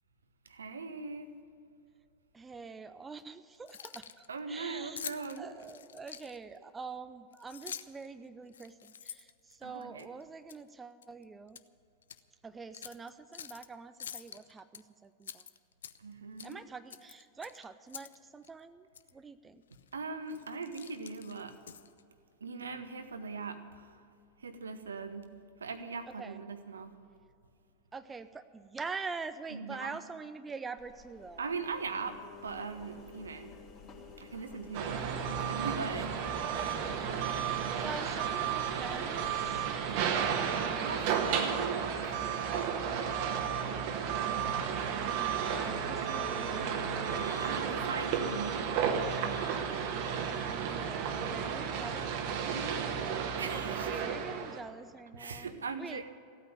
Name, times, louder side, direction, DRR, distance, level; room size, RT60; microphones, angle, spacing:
voice 1, 0.5-1.3 4.3-5.5 9.6-10.1 16.0-16.6 19.9-21.5 22.4-23.9 24.4-26.9 29.5-30.0 31.4-33.6 34.2-35.1 35.5-36.1 40.6-41.9 47.4-48.7 52.5-54.0 55.1-56.0, right 4 dB, 70° right, 10 dB, 1.0 m, -40 dB
voice 2, 2.3-5.0 5.4-11.6 12.4-15.4 16.4-18.9 19.1-19.6 26.2-26.4 27.9-31.5 37.7-41.3 43.9-47.7 49.9-53.0 53.8-56.0, right 4 dB, 15° right, 11 dB, 0.5 m, -45 dB
Keys jangling, 3.5-4.3 5.0-6.6 7.3-8.1 8.5-10.0 10.5-10.7 11.0-11.7 12.0-12.2 12.7-13.7 14.0-14.8 15.2-16.1 16.4-16.6 16.9-18.2 18.4-18.5 18.9-19.1 19.7-19.9 20.3-22.0, left 8 dB, 65° left, 0.5 m, -46 dB
Engine, 30.8-40.8, left 4 dB, 35° left, 2.7 m, -52 dB
sound 1, 34.7-54.6, right 7 dB, 45° right, 1.4 m, -33 dB
15.5 x 8.9 x 9.1 m, 2.5 s
figure-of-eight pair, 90°, 0 cm